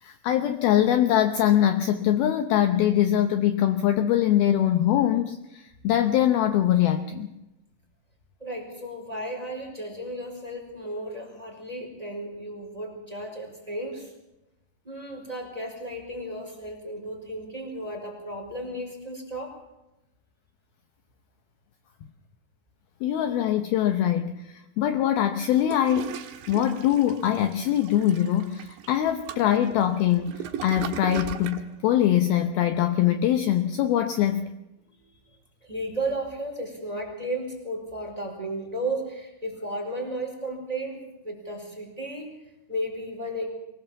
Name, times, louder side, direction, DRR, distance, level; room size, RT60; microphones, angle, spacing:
voice 1, 0.0-7.3 23.0-26.2 26.5-34.5, left 11 dB, 75° left, 8 dB, 2.4 m, -23 dB
voice 2, 8.4-14.1 14.8-19.6 35.0-35.1 35.6-42.3 42.7-43.6, right 1 dB, 10° right, 2 dB, 4.0 m, -34 dB
Toilet flush, 25.5-31.7, right 9 dB, 75° right, 3.6 m, -38 dB
23.5 x 18.5 x 7.3 m, 0.93 s
omnidirectional pair, 5.1 m